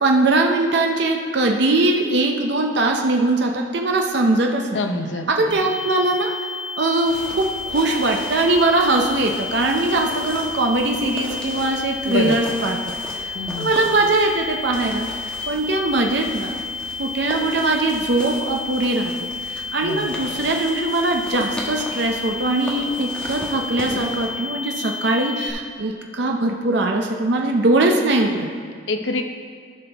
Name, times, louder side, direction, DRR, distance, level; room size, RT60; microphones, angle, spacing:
voice 1, 0.0-4.8 5.3-6.3 6.8-12.8 13.1-15.1 15.5-16.6 17.0-28.5, right 2 dB, 60° right, 1 dB, 0.6 m, -21 dB
voice 2, 4.7-5.6 12.1-12.6 13.3-13.8 19.8-20.1 28.9-29.2, left 2 dB, 70° left, 5 dB, 0.7 m, -26 dB
sound 1, 5.5-25.5, left 4 dB, 20° right, 1.1 m, -31 dB
sound 2, 7.0-24.3, equal, 5° left, 1.1 m, -37 dB
13.0 x 5.9 x 3.4 m, 2.1 s
head